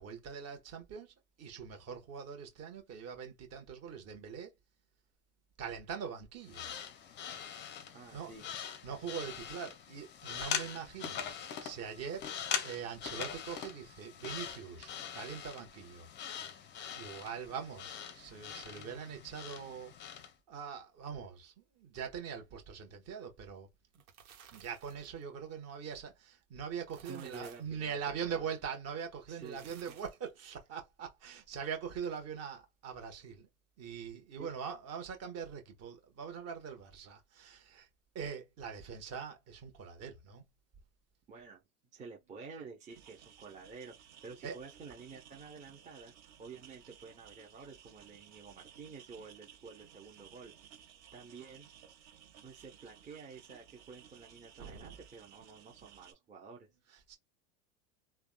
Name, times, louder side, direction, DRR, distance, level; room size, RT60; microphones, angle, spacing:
voice 1, 0.0-4.5 5.6-6.7 8.1-8.3 8.8-12.2 12.6-16.1 16.9-19.9 20.5-23.7 24.5-33.5 33.8-37.9 38.1-40.4 44.4-44.5 54.6-55.0 57.1-57.2, right 7 dB, 35° right, 1.2 m, -42 dB
sound 1, 6.4-20.3, left 8 dB, 25° left, 0.5 m, -42 dB
voice 2, 7.9-8.4 23.9-24.0 27.1-28.5 29.3-30.0 34.4-34.5 41.3-41.6 41.9-43.9 44.2-46.1 46.4-50.5 51.1-51.7 52.4-56.7, right 5 dB, 20° right, 0.7 m, -50 dB
sound 2, 23.8-25.2 26.7-27.8 29.3-30.3, right 8 dB, 85° right, 1.1 m, -57 dB
sound 3, 42.9-56.1, right 9 dB, 50° right, 1.4 m, -58 dB
3.4 x 2.2 x 2.2 m
supercardioid pair, 115°, 41 cm